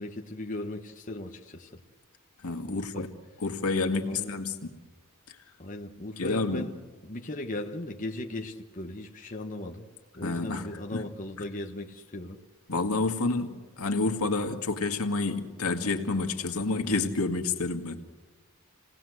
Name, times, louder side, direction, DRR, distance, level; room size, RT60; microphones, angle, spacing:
voice 1, 0.0-1.8 2.6-3.1 4.0-4.4 5.6-6.7 7.0-9.9 10.1-12.4, left 1 dB, 35° left, 1.3 m, -38 dB
voice 2, 2.4-3.1 3.4-4.7 6.2-6.7 10.2-10.7 10.9-11.0 12.7-18.0, left 3 dB, 75° left, 2.0 m, -29 dB
28.0 x 18.5 x 8.0 m
head